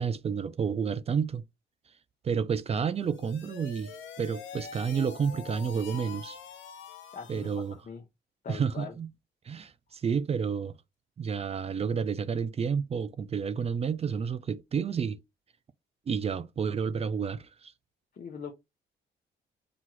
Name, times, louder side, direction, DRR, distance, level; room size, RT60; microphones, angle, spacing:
voice 1, 0.0-1.4 2.2-3.9 4.2-6.4 7.3-7.8 8.5-9.1 9.5-10.7 11.2-15.2 16.1-17.7, right 6 dB, 30° right, 0.4 m, -30 dB
sound 1, 2.9-7.7, left 7 dB, 75° left, 0.9 m, -45 dB
voice 2, 7.1-8.0 8.4-8.9 18.1-18.5, left 6 dB, 40° left, 0.8 m, -42 dB
5.9 x 2.3 x 3.0 m
cardioid pair, 90°, 20 cm